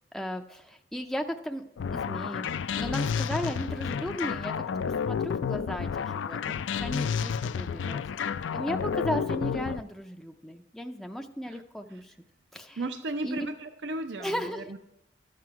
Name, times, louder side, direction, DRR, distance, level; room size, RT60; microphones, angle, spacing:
voice 1, 0.1-1.6 1.9-4.5 5.1-12.1 12.5-12.9 13.2-13.5 14.2-14.8, equal, ahead, 4 dB, 0.4 m, -35 dB
sound 1, 1.8-9.8, left 6 dB, 85° left, 0.4 m, -31 dB
voice 2, 12.8-14.8, right 2 dB, 70° right, 8 dB, 0.5 m, -35 dB
12.0 x 7.7 x 4.7 m, 0.86 s
head